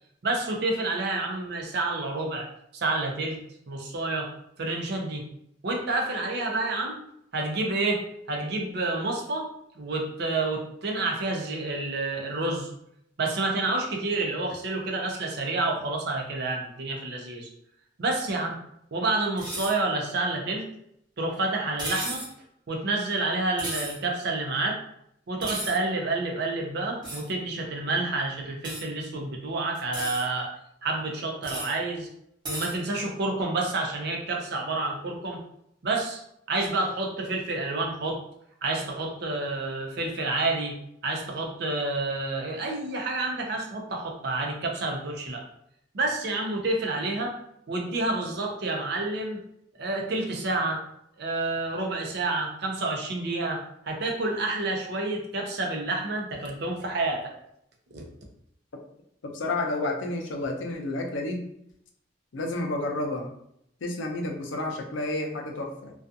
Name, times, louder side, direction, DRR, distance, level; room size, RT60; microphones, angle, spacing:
voice 1, 0.2-2.5 2.7-3.4 3.7-4.3 4.6-5.2 5.6-7.0 7.3-9.5 9.8-12.7 13.2-17.5 18.0-18.6 18.9-20.6 21.2-22.2 22.7-24.8 25.3-30.5 30.8-32.1 32.5-35.4 35.8-36.2 36.5-38.2 38.6-40.7 41.0-45.4 45.9-47.4 47.7-49.4 49.8-50.8 51.2-57.3 57.9-58.0, right 2 dB, 60° right, 1 dB, 0.5 m, -29 dB
sound 1, 19.4-19.8 21.8-22.3 23.6-24.0 25.4-25.8 27.0-27.3 28.6-28.8 29.7-30.2 31.4-31.7 32.4-32.7, right 1 dB, 25° right, 1.0 m, -34 dB
voice 2, 59.2-61.4 62.3-63.3 63.8-65.9, left 2 dB, 80° left, 2 dB, 0.5 m, -30 dB
2.4 x 2.3 x 2.6 m, 0.73 s
head